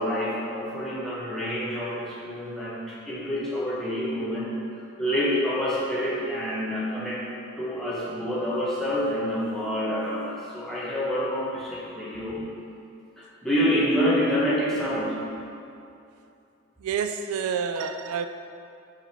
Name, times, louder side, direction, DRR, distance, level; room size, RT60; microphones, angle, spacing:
voice 1, 0.0-4.5 5.0-7.2 7.6-12.4 13.2-15.2, equal, ahead, -9 dB, 1.3 m, -27 dB
voice 2, 16.8-18.3, right 6 dB, 90° right, 8 dB, 0.3 m, -28 dB
5.1 x 4.9 x 4.4 m, 2.6 s
head